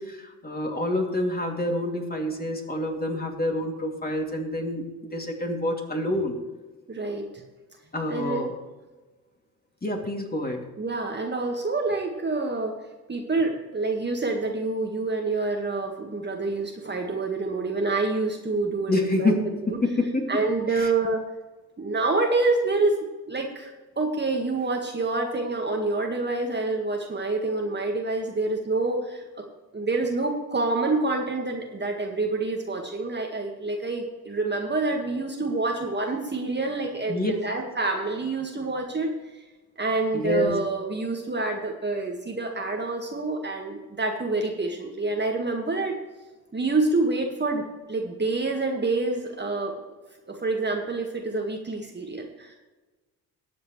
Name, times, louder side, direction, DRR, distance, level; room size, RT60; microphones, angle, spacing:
voice 1, 0.0-6.4 7.9-8.5 9.8-10.6 18.9-20.3 20.7-20.9 37.1-37.3 40.1-40.5, left 1 dB, 20° left, 1 dB, 2.8 m, -27 dB
voice 2, 6.9-7.4 8.1-8.4 10.8-12.8 13.1-19.3 20.3-21.2 21.8-23.0 23.3-23.7 24.0-29.2 29.7-39.1 39.8-46.0 46.5-49.8 50.3-52.5, right 3 dB, 25° right, 1 dB, 1.7 m, -27 dB
20.5 x 7.8 x 3.2 m, 1.2 s
hypercardioid pair, 50°, 45 cm